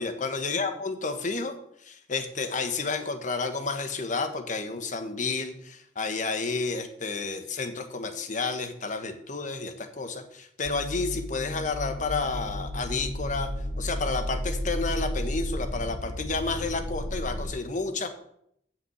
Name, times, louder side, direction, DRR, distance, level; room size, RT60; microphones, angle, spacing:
voice 1, 0.0-13.5 13.8-18.2, left 4 dB, 45° left, 8 dB, 1.2 m, -31 dB
sound 1, 10.6-17.5, left 1 dB, 10° right, 3.3 m, -33 dB
8.4 x 6.1 x 7.9 m, 0.72 s
head